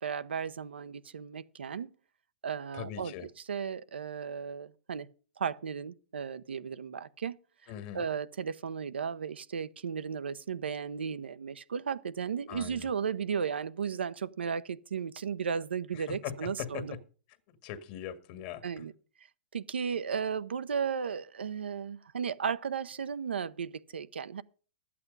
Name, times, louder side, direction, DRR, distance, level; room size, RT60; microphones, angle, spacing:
voice 1, 0.0-1.9 2.4-5.1 5.4-7.4 7.9-17.0 18.6-18.9 19.5-24.4, right 6 dB, 90° right, 0.7 m, -35 dB
voice 2, 2.7-3.3 7.7-8.0 12.5-12.9 16.1-16.8 17.6-18.9, left 10 dB, 45° left, 1.8 m, -40 dB
12.0 x 8.6 x 5.3 m
hypercardioid pair, 130°, 6 cm